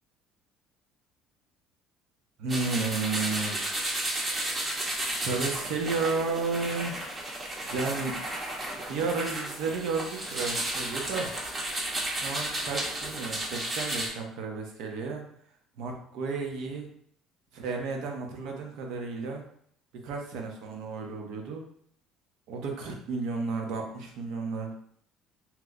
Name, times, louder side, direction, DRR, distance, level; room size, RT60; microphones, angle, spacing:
voice 1, 2.4-3.6 5.2-7.0 7.6-8.1 8.9-11.3 12.2-15.2 15.8-16.9 17.5-19.4 20.0-21.6 22.5-24.7, right 4 dB, 75° right, 2 dB, 0.7 m, -32 dB
sound 1, 2.5-14.1, right 1 dB, 25° right, 0.7 m, -33 dB
3.0 x 2.1 x 3.7 m, 0.65 s
cardioid pair, 120°, 0 cm